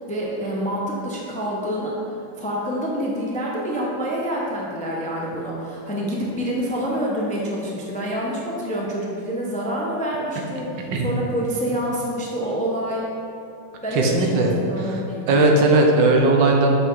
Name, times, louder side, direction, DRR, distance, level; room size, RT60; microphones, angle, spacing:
voice 1, 0.1-2.0 2.4-13.0 13.8-15.5, equal, 10° left, -3 dB, 0.3 m, -27 dB
voice 2, 13.9-14.9 15.3-16.8, right 2 dB, 90° right, 1 dB, 1.6 m, -18 dB
6.7 x 5.7 x 4.7 m, 2.7 s
omnidirectional pair, 1.9 m